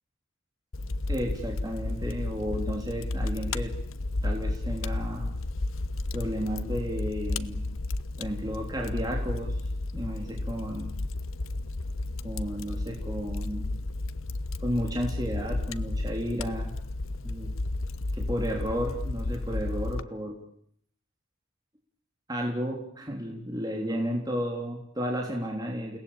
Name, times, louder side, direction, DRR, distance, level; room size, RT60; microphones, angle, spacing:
Fire, 0.7-20.0, left 2 dB, 85° left, 1.1 m, -32 dB
voice 1, 1.1-3.7 4.2-5.3 6.1-7.7 8.2-9.7 9.9-10.9 12.2-13.7 14.6-16.7 17.2-17.5 18.1-20.4 22.3-26.0, equal, 20° right, 0 dB, 3.5 m, -33 dB
30.0 x 19.0 x 8.8 m, 0.68 s
head